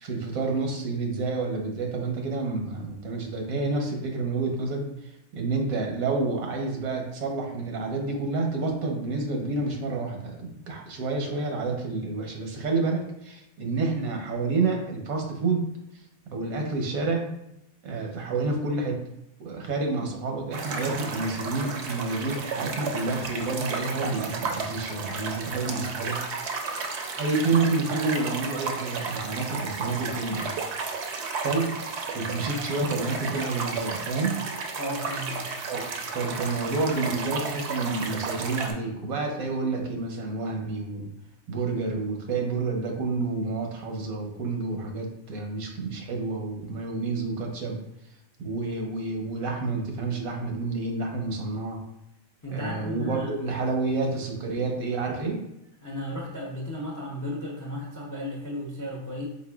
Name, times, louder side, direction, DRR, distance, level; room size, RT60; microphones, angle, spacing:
voice 1, 0.0-4.9 5.3-15.7 16.3-17.3 17.8-19.0 19.4-26.2 27.2-30.5 31.4-31.7 32.1-34.4 35.7-35.8 36.1-41.1 41.5-47.8 48.4-51.8 52.5-55.4, right 3 dB, 90° right, 2 dB, 1.2 m, -29 dB
sound 1, 20.5-38.7, right 4 dB, 65° right, 0.7 m, -33 dB
voice 2, 34.8-35.5 52.4-53.3 55.8-59.3, left 1 dB, 30° left, -3 dB, 0.3 m, -34 dB
4.3 x 4.0 x 2.3 m, 0.85 s
omnidirectional pair, 1.4 m